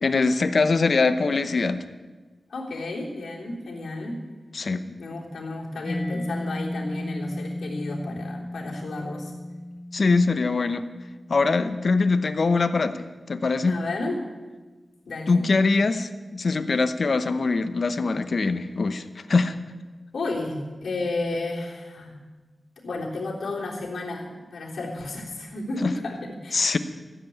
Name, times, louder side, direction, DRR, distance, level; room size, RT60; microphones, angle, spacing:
voice 1, 0.0-1.8 4.5-5.0 9.9-10.8 11.3-13.7 15.3-19.6 25.8-25.9 26.5-26.8, left 3 dB, 50° left, 11 dB, 0.8 m, -23 dB
voice 2, 2.5-4.2 5.0-9.3 13.7-14.3 15.0-15.4 20.1-22.1 22.8-26.8, left 2 dB, 80° left, -4 dB, 3.4 m, -32 dB
Mallet percussion, 5.9-13.4, left 1 dB, 20° left, 0.4 m, -36 dB
15.0 x 8.0 x 8.7 m, 1.3 s
wide cardioid pair, 115°, 0 cm